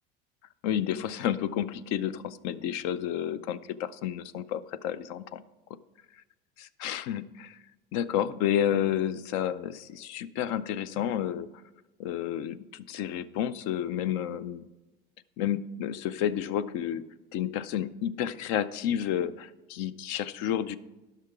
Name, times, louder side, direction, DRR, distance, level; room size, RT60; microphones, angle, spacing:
voice 1, 0.6-5.4 6.8-7.6 7.9-11.5 12.0-14.6 15.4-17.0 17.3-20.8, left 10 dB, 65° left, 17 dB, 0.6 m, -30 dB
11.5 x 5.8 x 4.6 m, 1.1 s
supercardioid pair, 105°, 29 cm